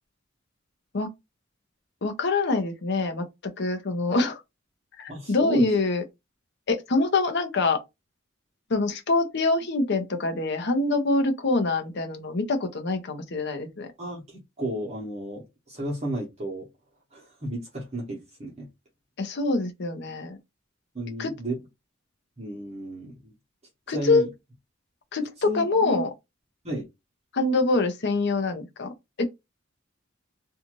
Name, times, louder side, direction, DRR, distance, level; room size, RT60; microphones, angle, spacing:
voice 1, 2.0-4.4 5.0-6.0 6.7-7.8 8.7-13.9 19.2-20.4 21.2-21.3 23.9-24.3 25.1-26.1 27.3-28.9 29.2-29.3, left 3 dB, 60° left, 0.7 m, -25 dB
voice 2, 5.1-5.7 14.0-16.7 17.1-18.7 20.9-21.6 22.4-23.3 23.9-24.3 25.4-26.0 26.6-26.8, right 1 dB, 30° right, 0.9 m, -33 dB
2.6 x 2.4 x 3.0 m
head